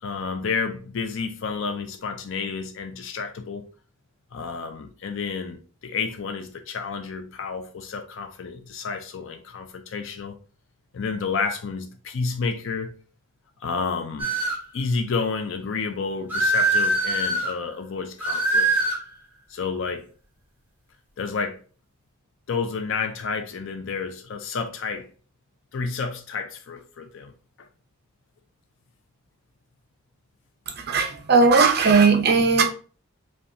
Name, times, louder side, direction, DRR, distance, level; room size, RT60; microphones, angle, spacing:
voice 1, 0.0-3.7 4.3-10.4 10.9-12.9 13.6-14.3 14.7-18.7 19.5-20.1 21.2-21.6 22.5-25.1 25.7-27.3, left 5 dB, 55° left, 0.4 m, -30 dB
sound 1, 14.2-14.7 16.3-17.5 18.2-19.0, right 2 dB, 10° right, 0.8 m, -22 dB
voice 2, 30.7-32.6, right 4 dB, 45° right, 0.6 m, -18 dB
5.2 x 2.3 x 2.7 m
head